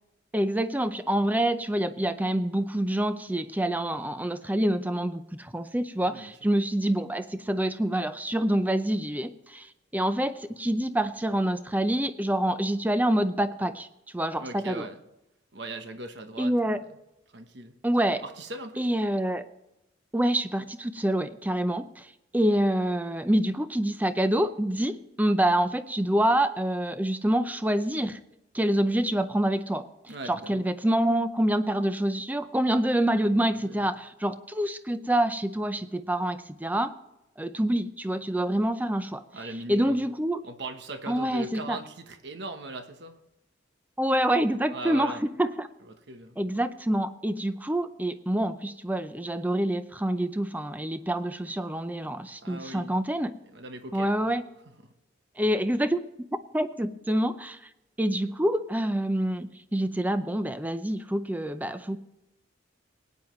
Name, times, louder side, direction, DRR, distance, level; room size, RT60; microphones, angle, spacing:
voice 1, 0.3-13.9 14.1-14.9 16.4-16.8 17.8-18.2 18.8-19.4 20.1-22.1 22.3-28.2 28.5-29.9 30.3-36.9 37.4-39.2 39.7-40.4 41.1-41.8 44.0-45.7 46.4-53.3 53.9-54.4 55.4-56.0 56.5-57.6 58.0-62.0, right 1 dB, 10° right, 11 dB, 0.5 m, -26 dB
voice 2, 14.4-15.0 15.5-16.7 17.3-17.7 18.2-18.8 30.1-30.7 33.6-33.9 39.3-40.1 40.4-43.2 44.7-45.3 45.9-46.4 52.4-53.0 53.5-54.3 54.8-54.9, right 1 dB, 60° right, 7 dB, 1.1 m, -39 dB
18.5 x 9.5 x 3.1 m, 0.91 s
head